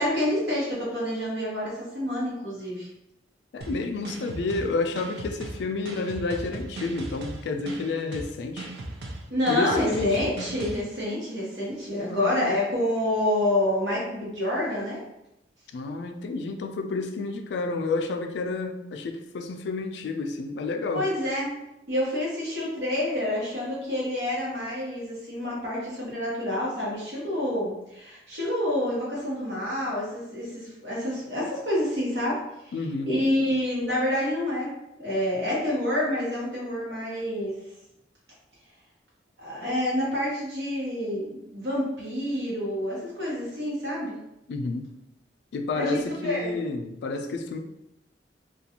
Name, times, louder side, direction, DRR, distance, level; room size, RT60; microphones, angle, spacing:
voice 1, 0.0-2.9 9.3-15.0 20.9-21.6 21.9-32.7 33.1-37.5 39.4-44.2 45.8-46.5, left 1 dB, 80° right, -5 dB, 1.1 m, -28 dB
voice 2, 3.5-8.7 9.5-10.2 12.1-12.6 15.7-21.1 32.7-33.2 44.5-44.9 45.5-47.6, left 3 dB, 75° left, 5 dB, 0.3 m, -30 dB
sound 1, 3.6-10.8, right 2 dB, 65° right, 0.4 m, -37 dB
2.4 x 2.2 x 2.8 m, 0.85 s
head